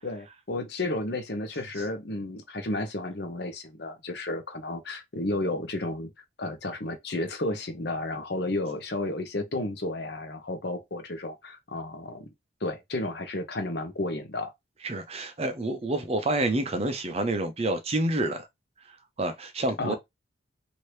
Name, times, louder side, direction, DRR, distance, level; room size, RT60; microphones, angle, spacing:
voice 1, 0.0-6.1 6.4-12.3 12.6-14.5 19.8-19.9, left 2 dB, 55° left, 0.8 m, -32 dB
voice 2, 14.8-18.5 19.2-19.9, right 2 dB, 30° right, 0.6 m, -28 dB
3.0 x 2.7 x 3.2 m
head